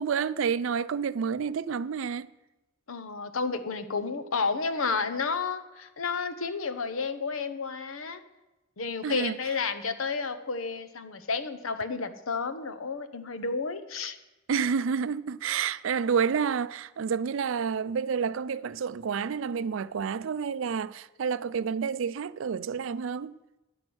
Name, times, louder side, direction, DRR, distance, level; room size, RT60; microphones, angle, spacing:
voice 1, 0.0-2.3 9.0-9.3 14.5-23.3, right 6 dB, 70° right, 0.4 m, -29 dB
voice 2, 2.9-8.2 8.8-14.2, left 4 dB, 85° left, 0.9 m, -31 dB
9.9 x 6.2 x 8.7 m
head